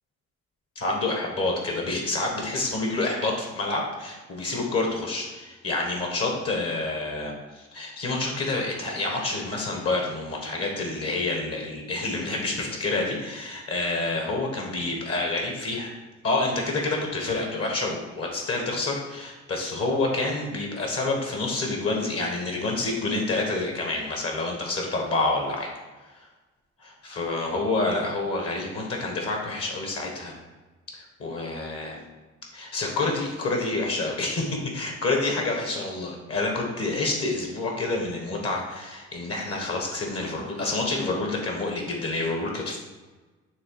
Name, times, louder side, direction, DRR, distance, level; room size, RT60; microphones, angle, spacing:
voice 1, 0.7-15.9 16.2-25.7 26.8-30.4 31.2-32.0 32.5-42.8, left 2 dB, 50° left, 1 dB, 1.5 m, -28 dB
6.6 x 3.3 x 4.7 m, 1.2 s
cardioid pair, 90°, 30 cm